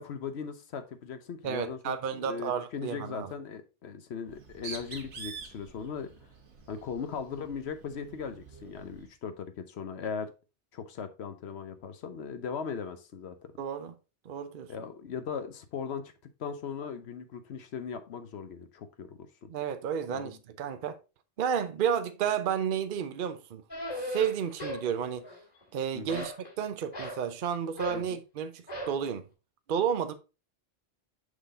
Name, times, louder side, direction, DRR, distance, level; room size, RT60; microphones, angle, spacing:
voice 1, 0.0-6.1 6.7-10.3 10.7-13.5 14.7-16.1 16.4-19.1 19.4-19.5 20.1-20.4 25.9-26.3 27.9-28.2, left 6 dB, 70° left, 1.0 m, -38 dB
voice 2, 1.4-3.3 13.6-13.9 14.3-14.7 19.5-21.0 21.4-23.6 24.1-25.2 25.7-29.2 29.7-30.1, right 8 dB, 55° right, 0.8 m, -31 dB
Bird, 4.2-9.1, right 5 dB, 80° right, 1.5 m, -47 dB
sound 1, 23.7-24.9 25.2-25.7 26.1-27.2 27.8-28.1 28.7-29.0, equal, 35° left, 2.2 m, -37 dB
6.4 x 3.9 x 3.7 m
omnidirectional pair, 1.2 m